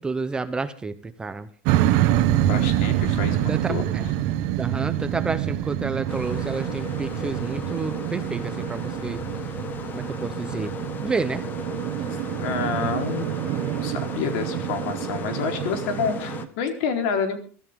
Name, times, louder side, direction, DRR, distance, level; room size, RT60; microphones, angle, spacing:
voice 1, 0.0-1.5 3.5-4.1 4.6-9.2 9.9-10.8 11.0-11.4, right 4 dB, 10° right, 11 dB, 0.9 m, -30 dB
sound 1, 1.7-16.5, right 13 dB, 60° right, 1.5 m, -26 dB
voice 2, 2.4-3.8 12.4-17.4, left 6 dB, 70° left, 5 dB, 4.3 m, -28 dB
sound 2, 6.1-16.5, left 5 dB, 25° left, 1.5 m, -36 dB
23.5 x 13.5 x 3.8 m, 0.40 s
cardioid pair, 160°, 7 cm